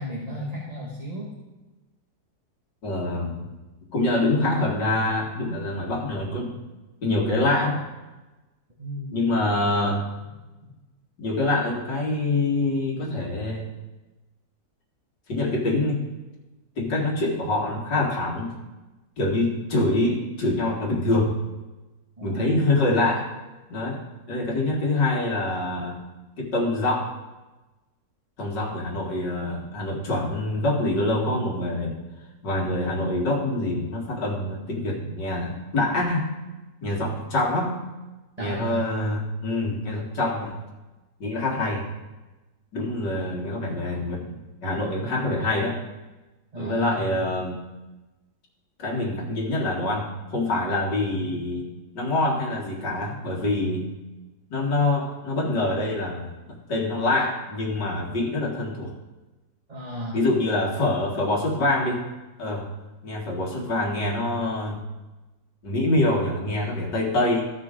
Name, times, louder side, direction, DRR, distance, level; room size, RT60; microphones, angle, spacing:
voice 1, 0.0-1.3 8.8-9.4 10.6-10.7 22.2-22.7 38.4-38.8 46.5-47.1 59.7-60.2, equal, 25° right, -5 dB, 1.4 m, -34 dB
voice 2, 2.8-3.5 3.9-6.6 7.0-7.8 9.1-10.1 11.2-13.7 15.3-16.0 16.8-18.5 19.2-21.4 22.2-23.3 23.7-24.0 24.3-26.0 26.4-27.1 28.4-31.9 32.4-36.3 36.8-37.8 38.4-40.6 41.2-41.9 42.7-45.8 46.6-47.6 48.8-51.7 51.9-53.9 54.5-56.3 56.7-58.9 60.1-62.0 62.4-62.7 63.0-64.8 65.6-67.4, left 2 dB, 75° left, -3 dB, 2.5 m, -25 dB
14.5 x 6.0 x 3.7 m, 1.1 s
omnidirectional pair, 1.9 m